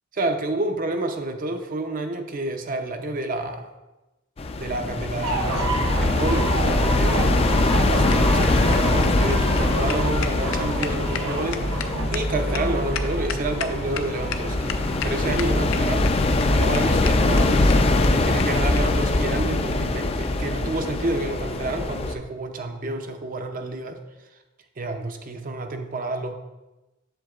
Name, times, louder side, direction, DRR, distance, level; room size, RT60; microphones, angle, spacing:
voice 1, 0.1-3.7 4.6-14.8 15.0-16.1 16.5-24.0 24.8-26.3, right 2 dB, 45° right, 6 dB, 0.5 m, -29 dB
sound 1, 4.4-22.2, left 2 dB, 30° left, 0.4 m, -23 dB
sound 2, 5.2-15.6, right 2 dB, 90° right, 0.9 m, -29 dB
sound 3, 7.5-14.0 14.3-14.4 14.7-15.1 15.4-16.1 16.4-16.5 16.7-16.8 17.1-17.2 17.4-17.5 17.7-17.8 18.0-18.1 18.4-18.5 18.8-18.9 19.7-19.8, left 9 dB, 85° left, 0.5 m, -33 dB
7.7 x 7.2 x 2.4 m, 1.0 s
head